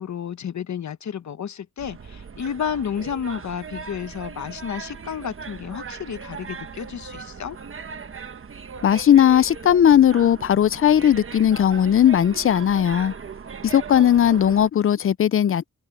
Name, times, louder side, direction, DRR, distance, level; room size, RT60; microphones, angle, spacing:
voice 1, 0.0-7.6, left 8 dB, 60° left, 1.0 m, -31 dB
sound 1, 1.8-14.7, right 5 dB, 40° right, 1.1 m, -38 dB
voice 2, 8.8-13.1 13.6-15.7, left 10 dB, 45° left, 0.4 m, -17 dB
wide cardioid pair, 160°, 32 cm